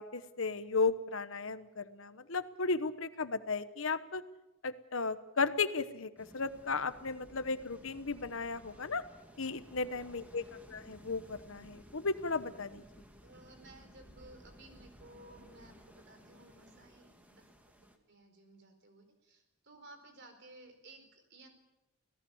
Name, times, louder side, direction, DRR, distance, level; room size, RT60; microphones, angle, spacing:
voice 1, 0.0-4.2 4.6-9.0 9.4-12.8, left 4 dB, 70° left, 12 dB, 1.1 m, -35 dB
sound 1, 6.2-18.0, equal, 5° right, 1.9 m, -57 dB
voice 2, 9.4-9.9 13.2-17.4 17.8-21.5, right 2 dB, 55° right, 6 dB, 4.4 m, -57 dB
26.0 x 17.5 x 7.2 m, 0.97 s
head